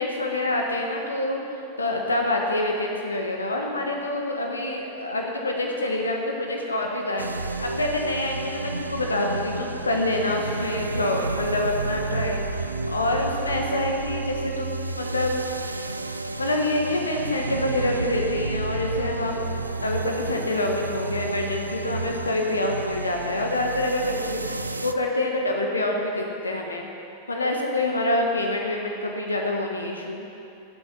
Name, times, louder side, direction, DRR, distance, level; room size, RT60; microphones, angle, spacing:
voice 1, 0.0-1.4 1.8-12.6 12.9-15.9 16.4-19.5 19.8-26.9 27.3-30.3, left 1 dB, 80° left, 1 dB, 1.2 m, -26 dB
sound 1, 7.2-24.9, right 3 dB, 80° right, 0.4 m, -31 dB
15.0 x 8.0 x 6.0 m, 2.7 s
figure-of-eight pair, 90°, 0 cm